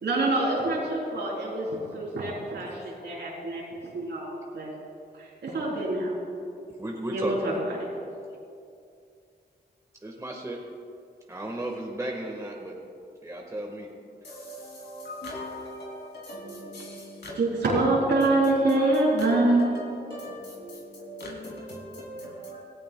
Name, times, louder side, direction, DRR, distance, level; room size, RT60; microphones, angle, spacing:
voice 1, 0.0-4.3 4.5-4.7 5.2-6.2 7.1-7.8 17.4-19.7, right 2 dB, 90° right, 3.5 m, -25 dB
voice 2, 6.8-7.6 10.0-10.6 11.3-12.7 13.2-13.9, right 1 dB, 20° right, 1.5 m, -34 dB
voice 3, 14.2-17.5 18.7-18.8 19.2-22.6, left 1 dB, 85° left, 2.8 m, -40 dB
18.0 x 14.5 x 2.3 m
cardioid pair, 70°, 18 cm